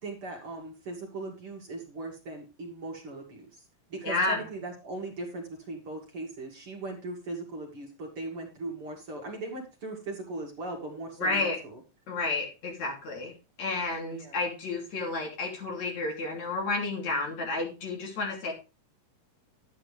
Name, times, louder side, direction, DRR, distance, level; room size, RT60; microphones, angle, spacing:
voice 1, 0.0-3.6 3.9-11.8 14.1-14.5, right 2 dB, 45° right, 1 dB, 2.5 m, -39 dB
voice 2, 4.0-4.4 11.2-11.6 12.1-13.3 13.6-18.5, left 3 dB, 55° left, 0 dB, 4.2 m, -31 dB
11.5 x 9.5 x 3.3 m, 0.29 s
omnidirectional pair, 3.8 m